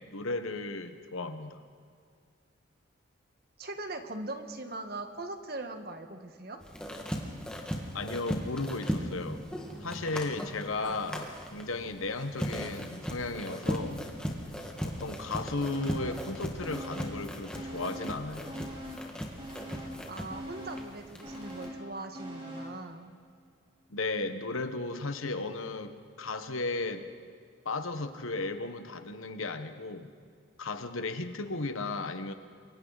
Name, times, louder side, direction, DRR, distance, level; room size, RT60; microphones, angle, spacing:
voice 1, 0.1-1.6 7.9-9.5 9.8-14.0 14.8-18.6 23.9-27.0 27.6-30.1 30.6-32.3, left 3 dB, 85° left, 8 dB, 1.4 m, -35 dB
voice 2, 3.6-6.6 20.1-23.1, right 2 dB, 50° right, 6 dB, 1.6 m, -40 dB
sound 1, 6.6-21.7, equal, 5° left, 1.9 m, -38 dB
sound 2, 15.7-16.3 16.6-18.2 18.5-22.8 23.2-23.3, right 1 dB, 25° right, 5.4 m, -43 dB
28.5 x 23.0 x 4.2 m, 2.2 s
head